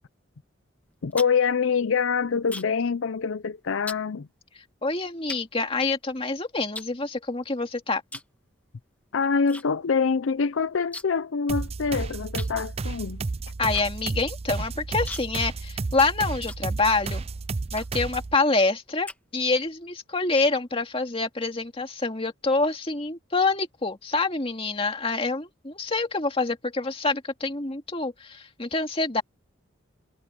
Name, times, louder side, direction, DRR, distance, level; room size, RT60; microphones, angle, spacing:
sound 1, 0.8-2.9 3.2-3.5 3.9-4.1 4.7-4.8 5.3-6.3 6.7-7.6 8.1-8.4 8.7-9.7 9.9-10.0 10.3-11.3 11.6-11.7 12.4-17.1 17.7-18.1 18.6-19.7, left 2 dB, 10° left, 1.5 m, -42 dB
voice 1, 1.0-4.3 9.1-13.2, left 5 dB, 75° left, 0.5 m, -25 dB
voice 2, 4.8-8.0 13.6-17.2 17.7-29.2, left 3 dB, 30° left, 2.3 m, -26 dB
sound 2, 11.5-18.3, right 3 dB, 30° right, 0.4 m, -32 dB
head